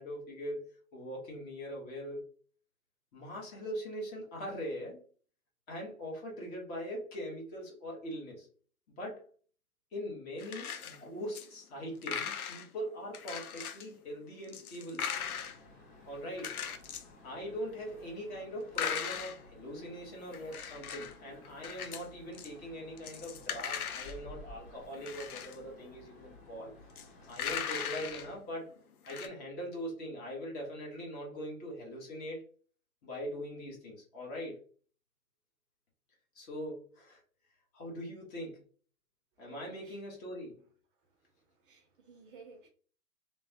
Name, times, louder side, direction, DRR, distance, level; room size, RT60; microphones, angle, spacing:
voice 1, 0.0-2.3 3.1-5.0 5.7-8.5 8.9-9.2 9.9-15.1 16.1-16.6 17.2-26.7 27.3-28.7 29.1-32.4 33.0-34.6 36.3-37.2 37.7-38.6 39.4-40.6, equal, 20° left, -2 dB, 1.0 m, -41 dB
sound 1, 10.4-11.0 11.3-11.5 11.8-12.7 13.1-13.9 14.4-15.6 16.4-17.1 18.8-19.4 20.3-21.2 21.4-22.1 22.3-22.5 23.0-24.2 24.9-25.6 26.9-27.1 27.3-28.3 28.8-28.9 29.1-29.3, left 8 dB, 75° left, 0.6 m, -38 dB
sound 2, 15.1-28.4, left 2 dB, 35° left, 1.4 m, -55 dB
voice 2, 41.0-42.7, right 4 dB, 35° right, 3 dB, 0.7 m, -57 dB
3.1 x 2.1 x 2.7 m, 0.43 s
hypercardioid pair, 130°, 44 cm